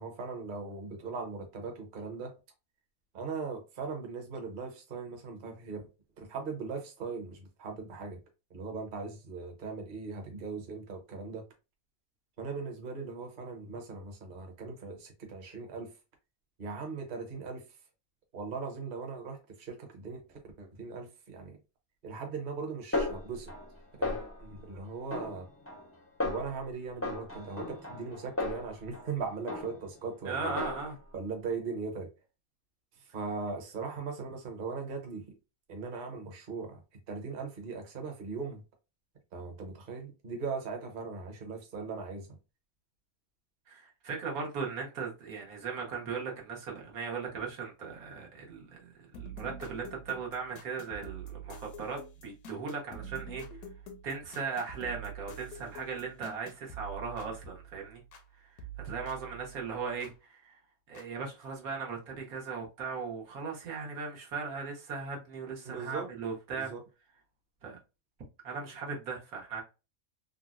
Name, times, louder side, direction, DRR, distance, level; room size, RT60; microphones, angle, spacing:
voice 1, 0.0-2.3 3.1-5.9 6.2-8.2 8.5-11.4 12.4-15.9 16.6-17.8 18.3-21.6 22.0-23.5 24.0-25.5 26.2-30.6 31.1-32.1 33.0-35.3 35.7-36.8 37.1-38.6 39.3-42.3 65.6-66.1 66.6-66.8, right 4 dB, 40° right, 0.8 m, -39 dB
Snare drum, 22.9-23.7 24.0-24.6 25.1-25.9 26.2-26.6 27.0-29.1 29.5-30.0 30.4-31.1, left 2 dB, 20° left, 0.3 m, -36 dB
voice 2, 30.3-31.0 43.7-53.4 54.0-58.0 58.4-60.6 60.9-66.7 67.6-67.8 68.4-69.6, right 5 dB, 85° right, 1.5 m, -38 dB
sound 1, 49.1-58.3 58.6-60.2 60.9-61.0, right 4 dB, 85° left, 1.1 m, -46 dB
3.8 x 2.1 x 2.4 m
omnidirectional pair, 1.5 m